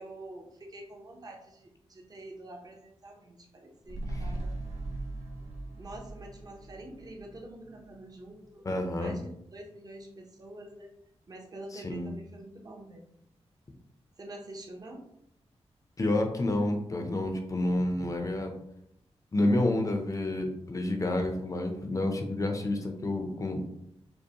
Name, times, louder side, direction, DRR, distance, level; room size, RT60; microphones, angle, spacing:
voice 1, 0.0-4.6 5.8-8.7 9.0-10.9 11.3-13.1 14.2-15.0, right 1 dB, 35° right, 1 dB, 0.7 m, -46 dB
sound 1, 3.8-8.4 8.7-8.8, right 2 dB, 85° right, 0.7 m, -39 dB
voice 2, 8.6-9.2 11.8-12.1 16.0-18.5 19.3-23.6, left 1 dB, 30° left, 4 dB, 0.5 m, -29 dB
5.2 x 2.1 x 2.8 m, 0.76 s
wide cardioid pair, 125°, 11 cm